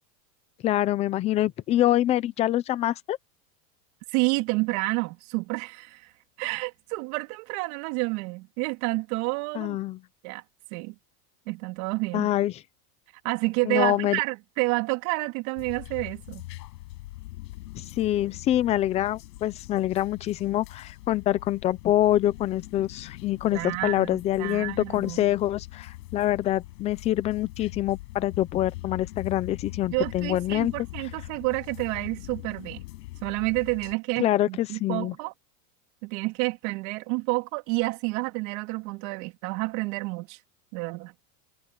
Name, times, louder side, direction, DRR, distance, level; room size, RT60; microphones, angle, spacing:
voice 1, 0.6-3.2 9.5-10.0 12.1-12.5 13.6-14.2 17.8-30.7 34.2-35.1, left 13 dB, 15° left, 0.3 m, -25 dB
voice 2, 4.1-6.1 6.4-9.8 10.2-10.4 10.7-10.9 11.5-12.3 13.2-16.4 23.5-25.2 29.9-32.8 33.2-35.3 36.0-40.4 40.7-41.1, right 27 dB, 60° right, 3.0 m, -29 dB
sound 1, 15.6-33.9, left 18 dB, 85° left, 7.7 m, -42 dB
supercardioid pair, 155°, 47 cm